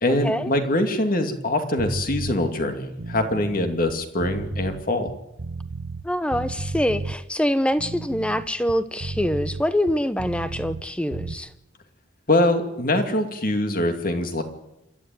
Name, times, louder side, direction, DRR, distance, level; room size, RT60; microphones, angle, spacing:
voice 1, 0.0-5.1 12.3-14.4, left 1 dB, 45° left, 6 dB, 2.4 m, -23 dB
sound 1, 1.8-2.4 2.9-6.1 6.3-7.2 7.7-10.9 11.1-11.4, right 3 dB, 75° right, 0.9 m, -33 dB
voice 2, 6.0-11.5, equal, 5° left, 12 dB, 0.9 m, -25 dB
27.5 x 12.0 x 9.2 m, 0.89 s
head